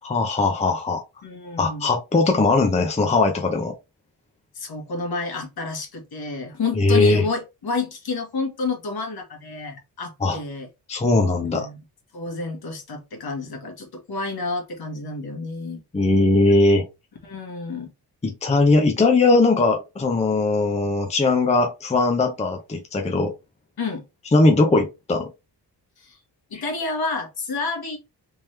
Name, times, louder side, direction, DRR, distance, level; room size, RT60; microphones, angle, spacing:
voice 1, 0.0-1.0 1.6-3.7 6.7-7.2 10.2-10.4 10.9-11.7 15.9-16.8 18.2-23.3 24.3-25.3 26.5-26.6, left 3 dB, 15° left, 0.6 m, -19 dB
voice 2, 1.2-1.9 4.5-10.7 11.4-11.8 12.1-15.8 17.2-17.9 23.8-24.0 26.0-26.2 26.5-28.0, left 3 dB, 60° left, 1.6 m, -29 dB
3.6 x 3.0 x 3.2 m
wide cardioid pair, 140°, 42 cm